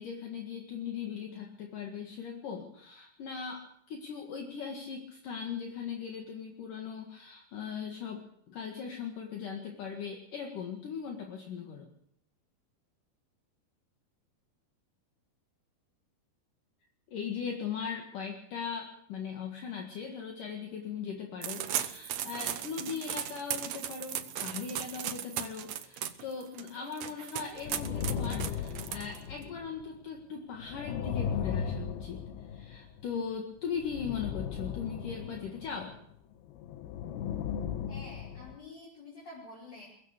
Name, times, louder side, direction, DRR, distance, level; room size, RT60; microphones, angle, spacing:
voice 1, 0.0-11.9 17.1-32.2 32.5-36.0, left 6 dB, 60° left, 1 dB, 3.3 m, -39 dB
sound 1, 21.4-29.4, right 10 dB, 80° right, 1.5 m, -37 dB
sound 2, 27.6-29.9 30.5-33.2 33.8-36.0 36.5-38.6, left 8 dB, 75° left, 3.0 m, -37 dB
voice 2, 37.9-39.9, left 2 dB, 25° left, -5 dB, 5.3 m, -48 dB
22.5 x 17.5 x 6.7 m, 0.70 s
omnidirectional pair, 4.6 m